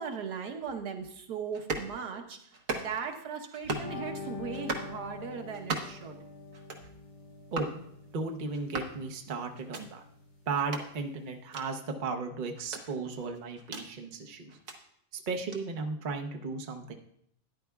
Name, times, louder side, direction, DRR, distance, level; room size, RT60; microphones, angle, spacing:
voice 1, 0.0-6.2, right 6 dB, 85° right, 4 dB, 1.6 m, -38 dB
sound 1, 1.5-1.9 2.5-3.1 3.5-3.9 4.5-4.9 5.5-6.1 6.5-6.9 7.5-7.8 8.5-9.0 9.5-9.8 10.6-10.9 11.5-11.7 12.6-13.9 14.5-14.8 15.5-15.6, right 3 dB, 60° right, 1.4 m, -37 dB
sound 2, 3.6-11.4, left 4 dB, 65° left, 4.8 m, -45 dB
voice 2, 7.5-7.8 8.1-10.0 10.5-14.6 15.1-16.9, right 4 dB, 40° right, 4 dB, 0.8 m, -35 dB
13.0 x 10.0 x 2.3 m, 0.70 s
omnidirectional pair, 1.7 m